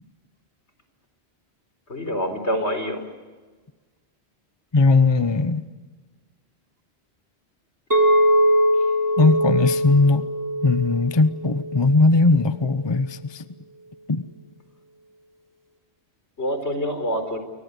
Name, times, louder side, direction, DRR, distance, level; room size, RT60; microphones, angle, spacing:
voice 1, 1.9-3.1 8.8-8.9 16.4-17.4, equal, 85° left, 4.5 m, -26 dB
voice 2, 4.7-5.6 9.2-10.3 10.6-13.4 14.1-14.2, left 3 dB, 25° left, 0.9 m, -19 dB
Chink clink, 7.9-12.2, equal, 15° right, 2.6 m, -21 dB
29.5 x 24.0 x 8.2 m
omnidirectional pair, 1.1 m